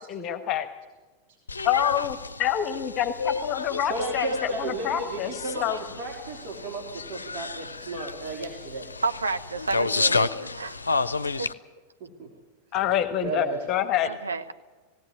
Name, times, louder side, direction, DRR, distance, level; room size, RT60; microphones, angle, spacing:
voice 1, 0.1-0.7 1.6-5.8 12.7-14.1, left 10 dB, 35° left, 9 dB, 1.4 m, -27 dB
sound 1, 1.5-11.5, left 4 dB, 75° left, 0.6 m, -31 dB
voice 2, 3.9-8.9 12.0-12.3 13.2-13.6, right 2 dB, 45° right, 0 dB, 3.3 m, -33 dB
voice 3, 9.0-10.9 11.4-11.5 14.0-14.5, right 4 dB, 75° right, 7 dB, 1.0 m, -31 dB
18.0 x 17.5 x 9.9 m, 1.3 s
figure-of-eight pair, 90°, 0 cm